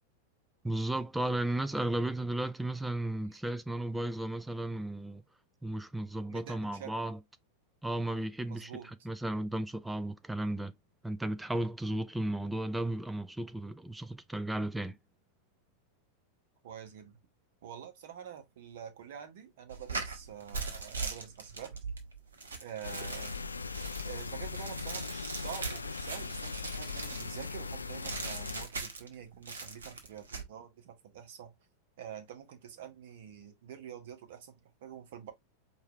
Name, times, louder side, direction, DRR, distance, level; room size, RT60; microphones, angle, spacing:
voice 1, 0.6-5.2 5.6-7.2 7.8-8.7 9.0-10.7 11.0-15.0, right 1 dB, 5° right, 0.5 m, -34 dB
voice 2, 6.3-7.1 8.5-8.9 16.6-17.2 17.6-21.8 22.6-23.4 24.0-31.5 32.0-35.3, right 9 dB, 55° right, 1.2 m, -47 dB
sound 1, 19.7-27.5 28.0-29.1 29.4-30.5, right 4 dB, 70° right, 1.1 m, -40 dB
sound 2, 22.8-28.7, left 4 dB, 75° left, 0.3 m, -39 dB
4.8 x 2.7 x 3.2 m
figure-of-eight pair, 90°, 0 cm